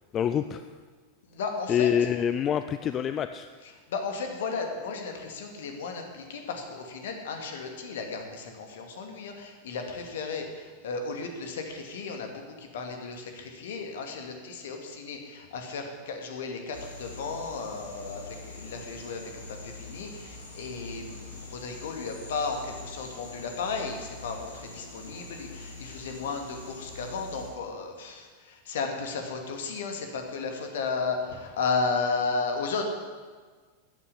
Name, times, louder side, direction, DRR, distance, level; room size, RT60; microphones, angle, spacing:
voice 1, 0.1-0.7 1.7-3.5, left 9 dB, 30° left, 11 dB, 0.5 m, -26 dB
voice 2, 1.2-1.9 3.6-32.8, left 4 dB, 60° left, 4 dB, 2.4 m, -34 dB
sound 1, 16.7-27.5, left 3 dB, 75° left, 3.4 m, -44 dB
13.5 x 9.8 x 8.6 m, 1.5 s
figure-of-eight pair, 90°, 0 cm